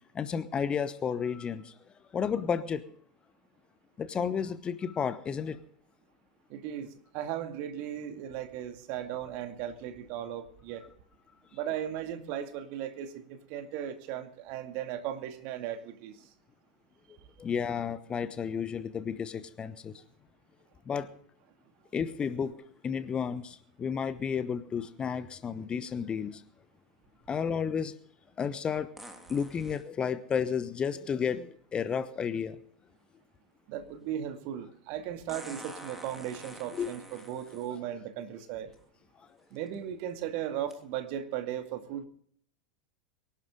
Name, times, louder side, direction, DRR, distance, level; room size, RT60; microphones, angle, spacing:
voice 1, 0.1-1.7 2.1-2.8 4.0-5.6 17.4-20.0 20.9-21.1 21.9-22.6 22.8-26.4 27.3-27.9 28.4-28.9 29.3-32.6 36.8-36.9, left 7 dB, 20° left, 13 dB, 1.0 m, -32 dB
voice 2, 6.5-6.9 7.1-10.8 11.5-16.2 33.7-38.7 39.5-42.1, right 10 dB, 45° right, 7 dB, 2.3 m, -37 dB
sound 1, 22.5-22.6 29.0-29.9 31.9-32.0 35.3-37.8 38.7-38.8 39.5-39.7 40.7-40.8, right 1 dB, 5° right, 3.1 m, -47 dB
24.0 x 11.5 x 3.7 m, 0.62 s
figure-of-eight pair, 85°, 4 cm